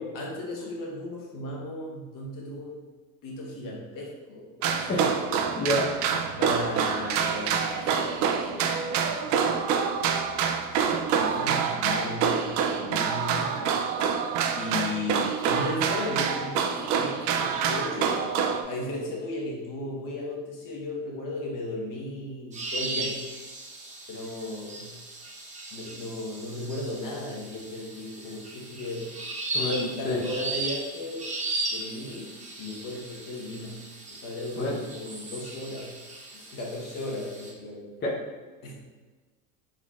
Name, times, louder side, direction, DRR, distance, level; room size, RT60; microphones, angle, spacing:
voice 1, 0.1-2.8 3.2-4.5 4.7-4.8 6.4-9.7 10.7-13.7 14.5-18.3 18.6-23.2 24.1-25.0 25.7-29.1 29.7-31.4 31.7-33.8 34.1-35.9 36.3-37.9 38.6-38.7, left 1 dB, 50° left, -2 dB, 1.2 m, -36 dB
sound 1, 4.6-18.6, right 6 dB, 45° right, 0.4 m, -26 dB
voice 2, 4.9-5.9 29.5-30.2 34.6-34.8 38.0-38.1, left 1 dB, 25° left, -6 dB, 0.9 m, -28 dB
sound 2, 22.5-37.5, right 2 dB, 15° right, 0.8 m, -37 dB
3.9 x 3.8 x 2.4 m, 1.3 s
supercardioid pair, 105°, 42 cm